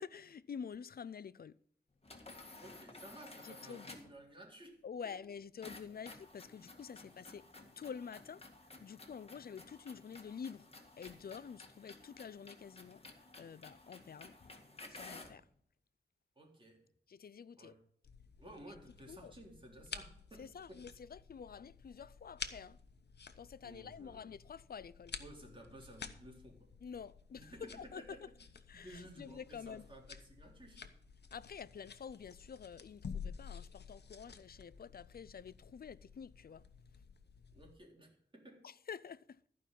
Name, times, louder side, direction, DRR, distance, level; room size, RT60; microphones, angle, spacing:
voice 1, 0.0-1.6 3.4-4.0 4.8-7.5 7.8-8.4 8.8-10.7 11.0-13.0 13.4-14.5 14.9-15.4 17.1-17.7 19.1-19.3 20.4-22.8 23.4-25.2 26.8-28.2 28.7-29.9 31.3-36.6 38.6-39.4, left 7 dB, 65° left, 0.5 m, -48 dB
sound 1, 2.0-4.2 5.6-15.4, left 2 dB, 35° left, 1.9 m, -54 dB
voice 2, 2.6-5.2 16.3-16.9 17.6-17.8 18.4-20.8 23.6-24.3 25.2-26.7 27.3-28.3 28.7-30.9 37.5-38.7, right 1 dB, 30° right, 3.6 m, -55 dB
sound 2, 18.0-37.8, left 6 dB, 80° left, 1.0 m, -51 dB
14.0 x 5.4 x 7.5 m
wide cardioid pair, 100°, 17 cm